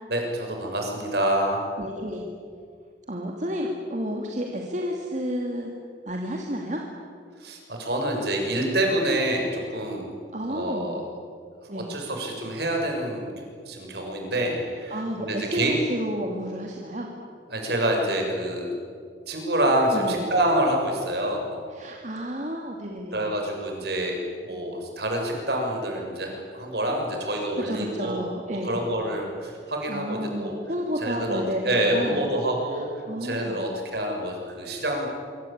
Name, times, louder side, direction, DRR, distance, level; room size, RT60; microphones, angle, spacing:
voice 1, 0.1-1.6 7.4-10.1 10.5-11.0 11.7-13.3 13.7-15.8 17.5-18.7 19.3-21.7 23.1-28.2 28.6-30.6 31.0-32.9 33.2-35.1, right 1 dB, 55° right, 1 dB, 6.9 m, -27 dB
voice 2, 1.8-2.2 3.1-5.7 6.1-6.8 10.3-11.0 11.7-11.9 14.9-17.1 19.9-20.2 21.7-23.2 27.6-28.8 29.9-32.2 32.7-33.7, equal, 40° right, 1 dB, 2.6 m, -31 dB
25.5 x 25.0 x 8.9 m, 2.2 s
head